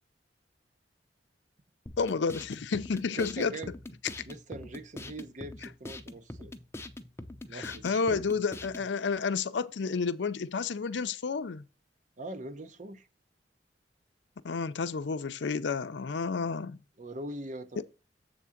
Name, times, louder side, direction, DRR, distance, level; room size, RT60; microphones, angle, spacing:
sound 1, 1.9-8.9, left 1 dB, 15° left, 0.6 m, -44 dB
voice 1, 2.0-3.6 7.5-11.6 14.4-16.8 17.8-17.9, left 5 dB, 85° left, 0.5 m, -31 dB
voice 2, 3.2-3.7 4.3-6.5 7.5-8.2 12.2-13.1 17.0-17.8, right 2 dB, 45° right, 0.8 m, -42 dB
7.7 x 3.7 x 5.8 m
head